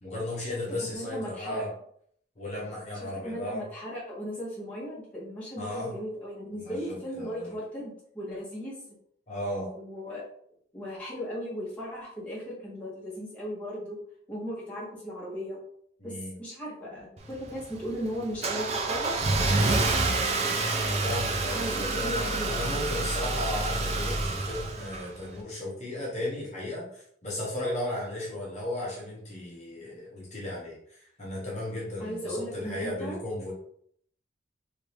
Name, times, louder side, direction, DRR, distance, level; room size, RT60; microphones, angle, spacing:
voice 1, 0.0-1.7 2.4-3.6 5.6-6.0 6.5-7.5 9.3-9.7 16.0-16.4 20.3-33.5, left 1 dB, 35° left, -5 dB, 1.0 m, -35 dB
voice 2, 0.9-1.6 3.0-8.8 9.7-10.2 10.7-14.0 14.3-15.6 16.0-16.1 16.4-19.9 21.5-22.8 32.0-33.2, equal, 5° left, -8 dB, 1.1 m, -37 dB
Car / Engine starting, 17.2-25.3, right 3 dB, 35° right, 0.5 m, -28 dB
3.3 x 2.7 x 3.3 m, 0.65 s
head